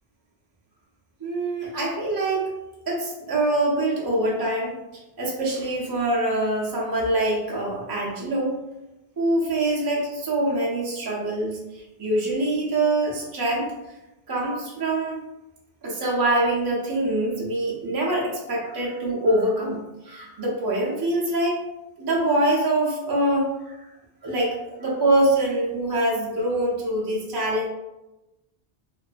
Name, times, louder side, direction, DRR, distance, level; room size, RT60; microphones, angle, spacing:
voice 1, 1.2-2.5 2.9-4.7 5.2-8.5 9.2-13.7 14.3-15.2 15.8-21.6 22.0-23.8 24.2-27.7, right 1 dB, 40° right, -4 dB, 0.3 m, -24 dB
2.4 x 2.3 x 2.4 m, 0.97 s
omnidirectional pair, 1.0 m